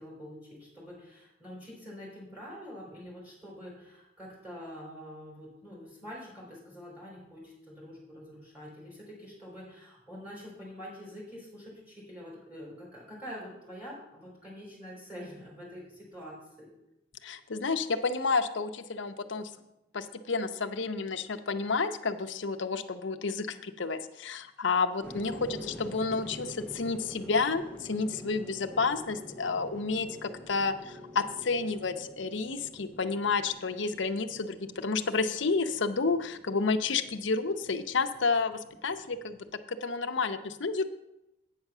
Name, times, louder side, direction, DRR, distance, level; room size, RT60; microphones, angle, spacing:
voice 1, 0.0-16.7, equal, 10° right, -5 dB, 4.0 m, -46 dB
voice 2, 17.2-19.5 19.9-40.8, left 4 dB, 70° left, 8 dB, 0.7 m, -30 dB
sound 1, 25.0-39.5, equal, 5° left, 0.9 m, -47 dB
8.9 x 6.5 x 6.1 m, 0.91 s
head